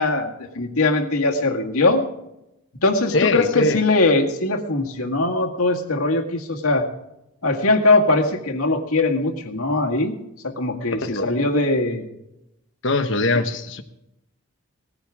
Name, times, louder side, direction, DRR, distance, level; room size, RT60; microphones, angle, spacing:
voice 1, 0.0-2.0 2.8-6.9 7.4-10.1 10.4-12.1, left 2 dB, 85° left, 3 dB, 1.9 m, -21 dB
voice 2, 3.1-3.8 11.0-11.3 12.8-13.8, left 2 dB, 55° left, 8 dB, 1.2 m, -21 dB
19.0 x 14.5 x 3.6 m, 0.88 s
head